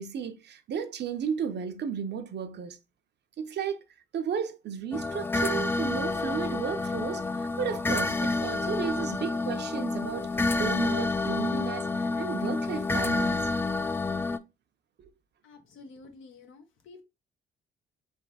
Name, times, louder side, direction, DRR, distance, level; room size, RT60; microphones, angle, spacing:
voice 1, 0.0-2.8 3.4-3.8 4.1-10.3 10.5-13.4, right 7 dB, 60° right, 0.7 m, -34 dB
sound 1, 4.9-14.4, left 3 dB, 10° left, 0.3 m, -29 dB
voice 2, 15.4-17.0, left 3 dB, 80° left, 1.1 m, -50 dB
3.4 x 2.8 x 4.1 m
cardioid pair, 90°, 20 cm